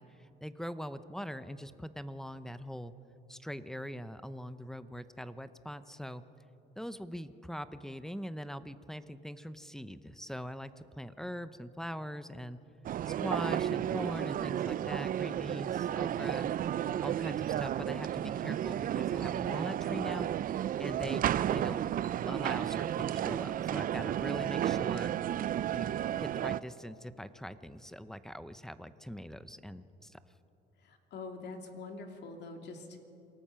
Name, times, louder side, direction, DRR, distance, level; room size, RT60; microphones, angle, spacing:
voice 1, 0.0-2.9 3.3-6.2 6.8-12.6 13.1-16.5 17.0-20.3 20.6-21.2 21.5-21.8 22.2-25.1 25.7-30.2, equal, ahead, 13 dB, 0.7 m, -42 dB
sound 1, 12.8-26.6, right 11 dB, 45° right, 0.4 m, -32 dB
voice 2, 30.8-33.0, left 3 dB, 60° left, 4 dB, 2.7 m, -44 dB
27.5 x 18.5 x 5.8 m, 2.8 s
cardioid pair, 120°, 20 cm